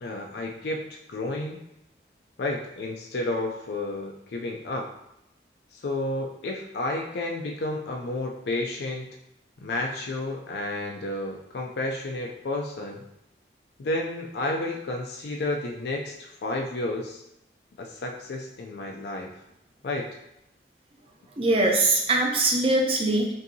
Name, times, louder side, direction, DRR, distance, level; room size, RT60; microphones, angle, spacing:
voice 1, 0.0-1.6 2.4-4.9 5.7-9.2 9.6-13.0 13.8-17.2 17.8-19.3 19.8-20.2, left 2 dB, 65° left, 1 dB, 0.4 m, -31 dB
voice 2, 21.4-23.3, right 2 dB, 30° right, 0 dB, 0.5 m, -22 dB
5.3 x 2.6 x 2.7 m, 0.84 s
head